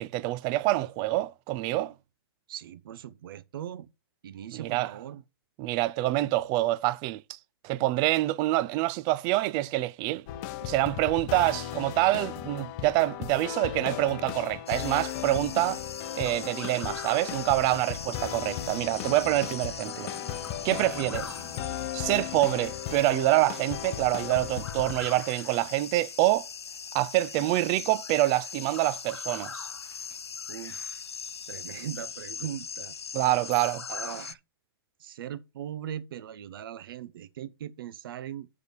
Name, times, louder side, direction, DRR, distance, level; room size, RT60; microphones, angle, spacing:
voice 1, 0.0-1.9 4.5-4.9 5.6-7.4 7.6-10.2 10.6-15.8 16.1-20.1 20.6-21.4 21.9-26.5 26.9-29.7 33.1-33.8, right 17 dB, 30° right, 0.5 m, -26 dB
voice 2, 2.5-3.9 4.2-5.2 29.8-30.2 30.5-31.0 31.5-32.9 33.9-34.4 35.0-38.5, right 10 dB, 60° right, 0.9 m, -40 dB
sound 1, 10.3-25.2, left 12 dB, 35° left, 0.6 m, -36 dB
sound 2, 14.7-34.3, left 6 dB, 90° left, 0.4 m, -40 dB
sound 3, 17.8-22.6, right 3 dB, 10° right, 1.6 m, -48 dB
6.6 x 4.9 x 6.8 m
hypercardioid pair, 120°, 13 cm